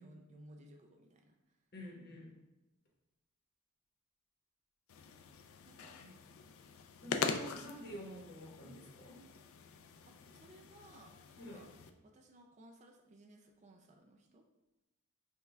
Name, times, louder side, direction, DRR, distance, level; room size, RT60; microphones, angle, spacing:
voice 1, 0.0-1.6 5.7-6.0 7.0-7.4 7.8-8.0 10.1-11.7 12.0-14.4, right 1 dB, 35° right, 3 dB, 0.3 m, -60 dB
voice 2, 1.7-2.4 6.0-6.1 7.0-9.2 11.4-11.6, equal, 50° left, -2 dB, 1.0 m, -49 dB
sound 1, 4.9-11.9, left 5 dB, 80° left, 0.4 m, -43 dB
5.6 x 2.3 x 3.2 m, 1.0 s
head